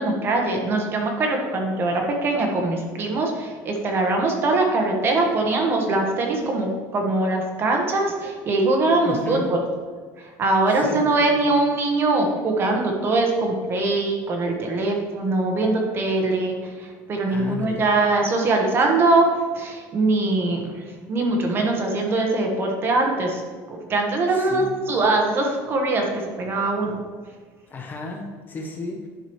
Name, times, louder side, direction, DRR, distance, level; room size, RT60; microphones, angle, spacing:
voice 1, 0.0-9.6 10.2-20.7 21.1-23.4 23.7-27.0, right 2 dB, 30° right, 1 dB, 1.3 m, -22 dB
voice 2, 9.0-9.5 10.7-11.6 17.3-17.9 24.3-24.7 27.7-29.1, left 2 dB, 25° left, 1 dB, 0.9 m, -33 dB
10.5 x 4.8 x 3.1 m, 1.5 s
cardioid pair, 145°, 7 cm